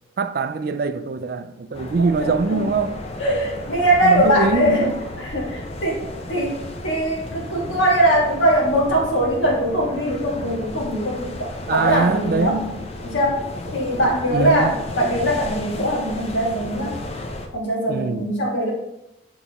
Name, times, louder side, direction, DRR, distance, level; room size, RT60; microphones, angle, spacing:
voice 1, 0.2-3.0 4.0-5.0 11.7-12.8 14.3-14.7 17.9-18.3, right 4 dB, 50° right, 0.3 m, -23 dB
sound 1, 1.7-17.5, left 1 dB, 30° left, 0.5 m, -34 dB
voice 2, 2.0-2.6 3.2-4.9 5.2-6.0 6.3-6.6 6.8-12.6 13.0-13.4 13.7-17.0 17.5-18.7, right 1 dB, 85° left, 1.8 m, -21 dB
8.2 x 4.0 x 3.0 m
head